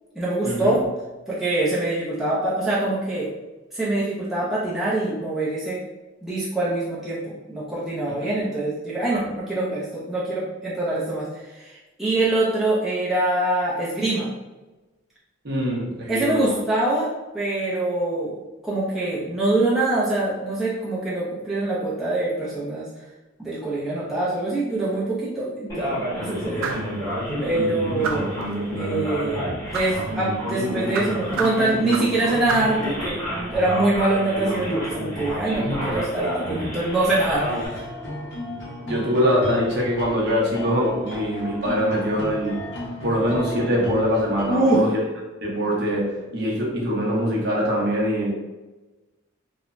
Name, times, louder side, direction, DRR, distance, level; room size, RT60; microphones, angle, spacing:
voice 1, 0.2-0.8 1.3-3.3 3.7-5.8 6.2-11.3 11.6-14.3 16.1-18.4 18.6-22.9 23.4-26.7 27.4-28.4 28.8-37.8 44.5-44.9, right 2 dB, ahead, -9 dB, 0.4 m, -24 dB
voice 2, 15.4-16.6 35.5-35.9 38.9-42.7 43.0-45.0 45.4-48.3, equal, 50° right, -4 dB, 0.7 m, -23 dB
Male speech man speaking, 25.7-37.7, equal, 15° left, 0.9 m, -29 dB
sound 1, 26.6-26.9 28.0-28.4 29.7-30.0 30.9-32.2 32.5-32.8, right 5 dB, 75° right, 0.3 m, -30 dB
sound 2, 37.1-44.8, left 1 dB, 55° left, 0.7 m, -34 dB
3.1 x 2.1 x 2.4 m, 1.1 s
head